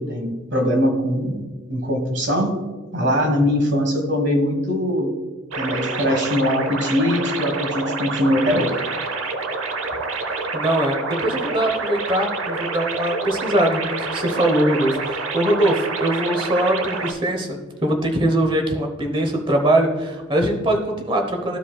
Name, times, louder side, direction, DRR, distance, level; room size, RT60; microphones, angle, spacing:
voice 1, 0.0-1.4 1.7-2.5 2.9-5.1 5.6-8.7, equal, 55° right, 3 dB, 1.4 m, -21 dB
sound 1, 5.5-17.1, right 3 dB, 85° right, 0.8 m, -27 dB
voice 2, 10.5-21.6, right 1 dB, 25° right, 3 dB, 0.9 m, -22 dB
14.0 x 5.1 x 2.3 m, 1.3 s
head